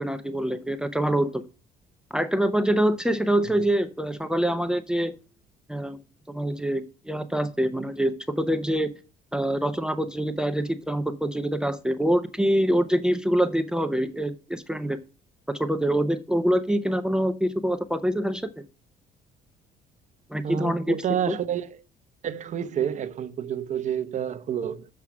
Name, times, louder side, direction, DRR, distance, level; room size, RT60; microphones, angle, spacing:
voice 1, 0.0-1.4 2.1-5.1 5.7-6.0 6.3-8.9 9.3-15.0 15.5-18.5 20.3-21.0 21.3-21.4, right 1 dB, 5° right, 0.6 m, -25 dB
voice 2, 20.4-21.8 22.2-24.9, right 9 dB, 45° right, 0.8 m, -29 dB
7.5 x 4.6 x 6.0 m
cardioid pair, 110°, 17 cm